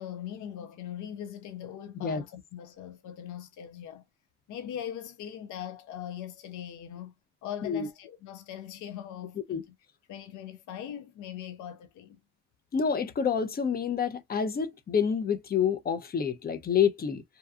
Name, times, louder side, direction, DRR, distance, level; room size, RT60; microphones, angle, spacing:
voice 1, 0.0-4.0 4.5-7.1 7.4-9.7 10.1-12.2, left 10 dB, 75° left, 0.6 m, -40 dB
voice 2, 12.7-17.2, left 7 dB, 30° left, 0.5 m, -28 dB
2.7 x 2.3 x 2.3 m
cardioid pair, 90°, 30 cm